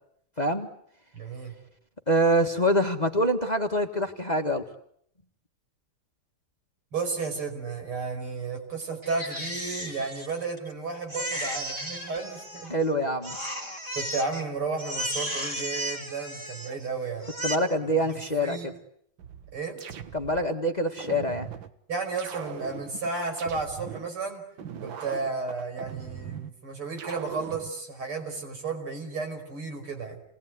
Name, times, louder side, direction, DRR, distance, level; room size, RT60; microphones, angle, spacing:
voice 1, 0.4-0.7 2.1-4.6 12.7-13.4 17.4-18.7 20.1-21.5, equal, 20° left, 6 dB, 1.6 m, -25 dB
voice 2, 1.1-1.5 6.9-12.8 13.9-17.3 17.8-18.7 19.5-19.8 21.9-24.4 24.8-30.2, right 4 dB, 85° right, 4 dB, 6.2 m, -33 dB
Crying sobbing, 9.0-10.7 11.1-12.9 13.2-14.4 14.8-16.9 17.2-17.6, equal, 15° right, 2.6 m, -34 dB
sound 1, 19.2-20.5 21.0-21.7 22.2-24.1 24.6-26.5 27.0-27.7, right 8 dB, 65° right, 2.0 m, -40 dB
29.0 x 20.5 x 9.6 m, 0.70 s
omnidirectional pair, 2.3 m